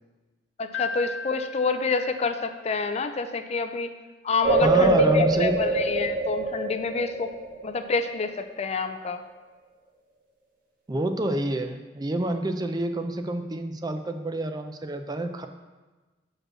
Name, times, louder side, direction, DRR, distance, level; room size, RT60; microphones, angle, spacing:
voice 1, 0.6-3.9 4.2-7.3 7.6-9.2, left 4 dB, 35° left, 9 dB, 0.4 m, -28 dB
Piano, 0.7-2.8, left 5 dB, 85° left, 1.4 m, -37 dB
sound 1, 4.4-8.0, right 2 dB, 50° right, 1.6 m, -24 dB
voice 2, 4.6-5.6 10.9-15.5, right 1 dB, 20° right, 7 dB, 0.5 m, -28 dB
6.1 x 5.2 x 6.2 m, 1.2 s
head